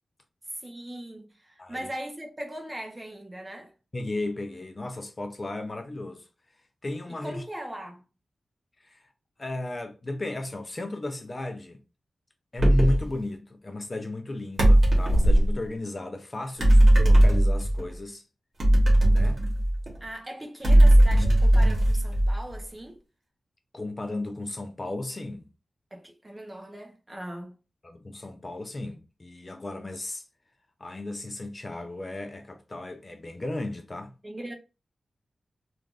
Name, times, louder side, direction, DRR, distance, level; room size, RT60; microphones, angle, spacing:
voice 1, 0.6-3.7 7.2-8.0 20.0-23.0 25.9-27.6 34.2-34.5, right 1 dB, 20° right, 0.6 m, -39 dB
voice 2, 1.6-1.9 3.9-6.3 6.8-7.4 8.8-9.1 9.4-11.8 12.5-18.2 19.1-19.4 23.7-25.5 27.8-30.2 30.8-34.1, left 1 dB, 30° left, 0.4 m, -34 dB
sound 1, 12.6-13.1 14.6-15.5 16.6-17.8 18.6-20.0 20.6-22.5, right 1 dB, 65° right, 1.0 m, -18 dB
3.2 x 2.3 x 2.4 m
wide cardioid pair, 150°, 0 cm